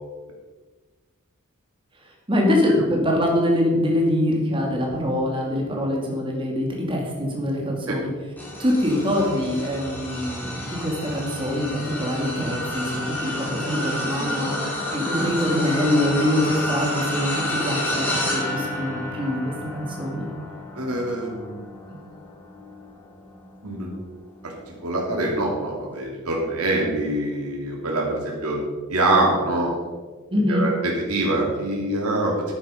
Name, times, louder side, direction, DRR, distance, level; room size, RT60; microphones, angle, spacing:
voice 1, 2.3-8.1 8.6-20.3 21.9-22.0 30.3-30.6, left 1 dB, 25° right, 0 dB, 2.6 m, -24 dB
sound 1, 8.4-23.9 24.4-24.6 25.9-26.0, left 1 dB, 10° left, 2.9 m, -30 dB
voice 2, 20.7-21.6 23.6-23.9 24.4-28.6 28.9-29.8 30.5-32.5, right 2 dB, 80° right, -2 dB, 3.0 m, -24 dB
11.0 x 8.9 x 5.3 m, 1.3 s
head